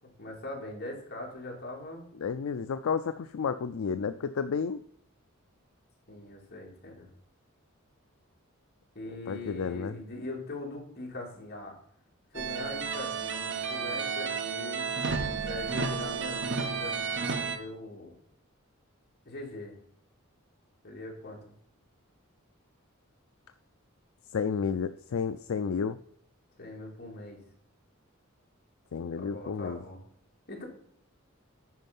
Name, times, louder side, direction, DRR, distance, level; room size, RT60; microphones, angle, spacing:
voice 1, 0.0-2.0 6.1-7.1 8.9-11.8 12.3-14.9 15.4-17.0 17.5-18.1 19.2-19.7 20.8-21.4 26.6-27.4 29.1-30.0 30.5-30.6, left 2 dB, 50° left, -2 dB, 3.1 m, -41 dB
voice 2, 2.2-4.8 9.3-9.9 24.3-26.0 28.9-29.8, left 6 dB, 75° left, 11 dB, 0.4 m, -31 dB
sound 1, 12.3-17.6, right 5 dB, 60° right, 1.2 m, -32 dB
9.4 x 5.4 x 5.4 m, 0.69 s
head